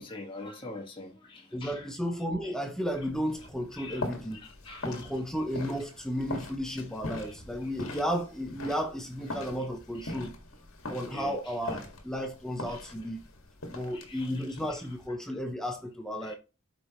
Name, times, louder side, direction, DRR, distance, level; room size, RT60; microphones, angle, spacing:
voice 1, 0.0-1.9 3.7-4.0 4.3-5.1 7.1-7.3 10.0-10.2 11.1-11.3 12.7-12.8 13.9-14.3 16.2-16.3, left 2 dB, 25° left, 1.6 m, -44 dB
voice 2, 1.5-4.4 4.8-10.3 10.9-13.2 13.7-16.3, equal, 5° left, 0.8 m, -33 dB
sound 1, 2.8-15.1, left 2 dB, 70° left, 1.8 m, -42 dB
12.5 x 5.1 x 3.0 m
head